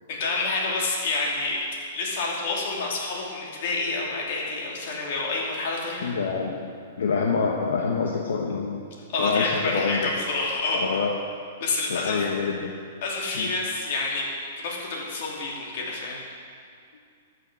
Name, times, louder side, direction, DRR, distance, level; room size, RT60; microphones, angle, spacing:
voice 1, 0.1-1.6 1.9-6.1 9.1-10.8 11.6-12.2 13.0-14.3 14.6-16.2, left 3 dB, 50° left, -3 dB, 2.8 m, -28 dB
voice 2, 6.0-6.6 7.0-8.9 9.2-10.1 10.7-11.2 11.9-12.7 13.3-13.5, left 5 dB, 85° left, 0 dB, 1.1 m, -26 dB
13.5 x 6.5 x 6.2 m, 2.2 s
hypercardioid pair, 160°, 0 cm